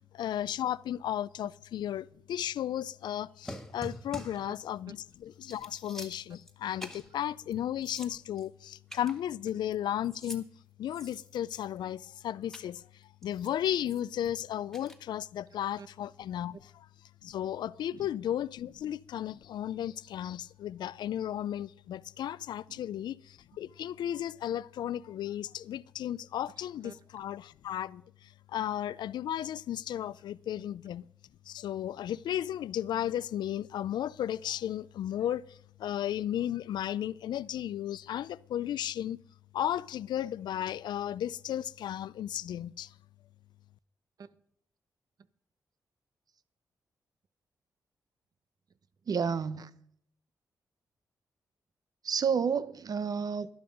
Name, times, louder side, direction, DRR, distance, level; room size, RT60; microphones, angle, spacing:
voice 1, 0.1-10.5 10.8-12.8 13.2-16.9 17.2-31.0 31.5-39.2 39.5-42.9, left 11 dB, 80° left, 0.4 m, -34 dB
sound 1, 3.4-4.5 5.0-5.1 5.4-6.5 6.8-7.1 7.5-7.6 7.8-8.5 8.9-9.7 10.0-10.4 10.9-11.8 12.5-12.7 13.2-14.3 14.7-15.0, equal, 5° left, 1.8 m, -46 dB
voice 2, 49.1-49.7 52.0-53.5, right 6 dB, 60° right, 0.9 m, -30 dB
12.0 x 11.5 x 5.2 m
cardioid pair, 65°, 7 cm